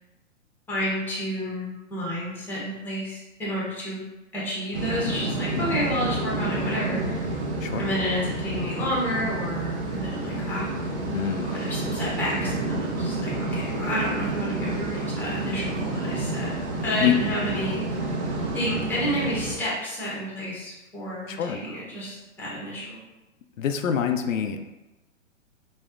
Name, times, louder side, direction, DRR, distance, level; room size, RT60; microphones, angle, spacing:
voice 1, 0.7-4.0 4.3-7.3 7.8-10.7 11.4-16.6 16.8-17.8 18.5-23.0, equal, 5° left, -6 dB, 0.8 m, -30 dB
sound 1, 4.7-19.6, right 2 dB, 60° right, 0.9 m, -29 dB
voice 2, 5.5-5.9 7.6-7.9 11.1-11.5 17.0-17.2 21.3-21.6 23.6-24.6, left 9 dB, 85° left, 6 dB, 0.5 m, -26 dB
5.1 x 2.1 x 2.4 m, 1.0 s
hypercardioid pair, 130°, 39 cm